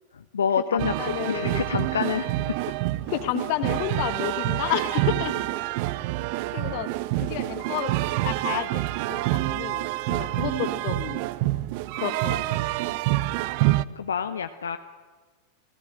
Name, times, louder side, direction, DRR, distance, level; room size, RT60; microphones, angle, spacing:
voice 1, 0.1-2.7 7.2-7.3 14.0-14.8, left 7 dB, 70° left, 10 dB, 0.8 m, -28 dB
voice 2, 0.7-1.6 3.1-5.4 6.5-6.9 7.2-11.2 12.0-12.6, left 15 dB, 45° left, 11 dB, 1.6 m, -31 dB
sound 1, 0.8-13.8, right 17 dB, 45° right, 0.6 m, -27 dB
28.0 x 17.0 x 7.9 m, 1.4 s
figure-of-eight pair, 90°, 0 cm